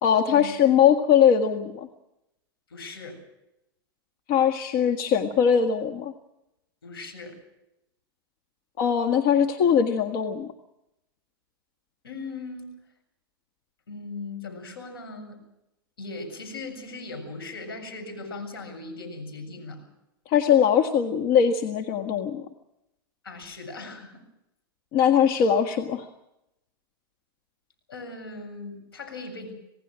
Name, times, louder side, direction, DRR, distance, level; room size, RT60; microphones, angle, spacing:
voice 1, 0.0-1.9 4.3-6.1 8.8-10.5 20.3-22.5 24.9-26.1, left 8 dB, 50° left, 5 dB, 1.7 m, -21 dB
voice 2, 2.7-3.2 6.8-7.4 12.0-12.7 13.9-15.4 16.0-19.9 23.2-24.2 27.9-29.5, left 3 dB, 85° left, 5 dB, 7.2 m, -38 dB
27.0 x 18.0 x 6.3 m, 0.87 s
hypercardioid pair, 105°, 12 cm